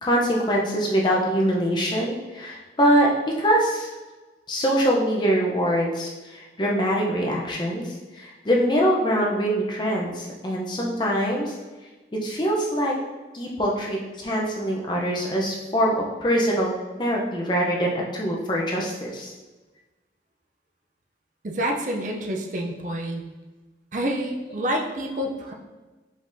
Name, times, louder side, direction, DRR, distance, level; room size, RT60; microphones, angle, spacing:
voice 1, 0.0-3.9 4.5-11.5 12.1-13.0 13.3-16.7 17.0-19.3, equal, 25° left, -2 dB, 0.6 m, -23 dB
voice 2, 21.4-23.3 23.9-25.5, equal, 45° right, 1 dB, 0.5 m, -28 dB
5.1 x 3.9 x 2.6 m, 1.2 s
head